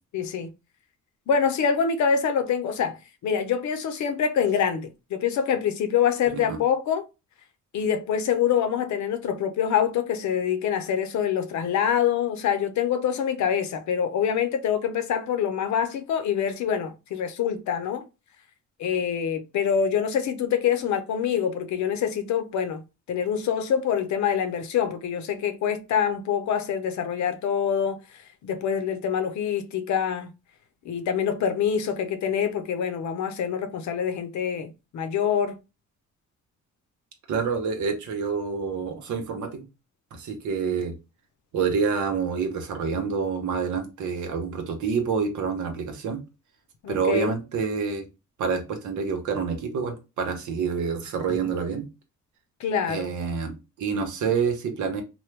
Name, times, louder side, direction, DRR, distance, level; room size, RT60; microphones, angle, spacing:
voice 1, 0.1-0.5 1.3-3.0 3.2-7.0 7.7-18.0 18.8-22.8 23.1-28.0 28.4-30.3 30.8-35.6 46.8-47.3 52.6-53.1, left 8 dB, 70° left, 0.7 m, -25 dB
voice 2, 6.3-6.6 37.3-39.6 40.1-40.9 41.5-46.2 46.9-48.1 48.4-51.9 52.9-55.0, right 5 dB, 75° right, 1.0 m, -27 dB
3.1 x 2.2 x 3.2 m
cardioid pair, 90°, 30 cm